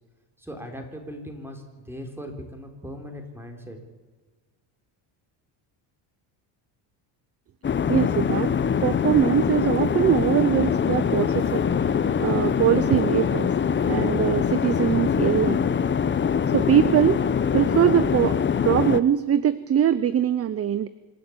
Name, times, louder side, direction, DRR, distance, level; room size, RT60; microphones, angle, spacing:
voice 1, 0.4-3.8, equal, 5° right, 4 dB, 3.8 m, -39 dB
sound 1, 7.6-19.0, left 7 dB, 25° left, 0.8 m, -23 dB
voice 2, 7.9-8.5 8.8-11.6 12.2-13.5 13.9-15.6 16.5-17.2 17.5-20.9, right 10 dB, 30° right, 16 dB, 0.6 m, -22 dB
26.0 x 11.5 x 8.7 m, 1.4 s
cardioid pair, 130°, 47 cm